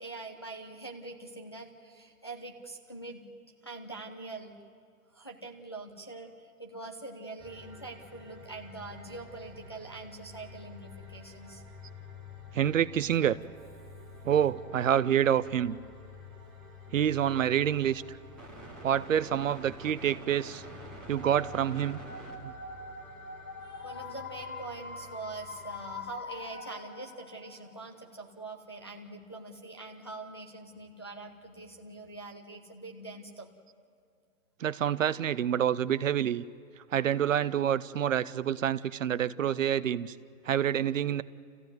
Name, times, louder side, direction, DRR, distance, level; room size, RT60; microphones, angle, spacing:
voice 1, 0.0-3.2 3.6-4.5 5.1-11.6 23.6-33.5, right 3 dB, 20° left, 0 dB, 0.5 m, -44 dB
sound 1, 7.4-26.1, left 2 dB, ahead, 0.9 m, -49 dB
voice 2, 12.5-13.4 14.2-15.8 16.9-18.2 18.8-20.6 21.1-22.0 22.4-22.5 34.6-36.4 36.8-40.2 40.4-41.2, right 9 dB, 55° right, 16 dB, 0.7 m, -27 dB
sound 2, 21.1-27.9, left 4 dB, 60° left, 1.7 m, -44 dB
28.5 x 15.0 x 9.3 m, 2.3 s
hypercardioid pair, 170°, 46 cm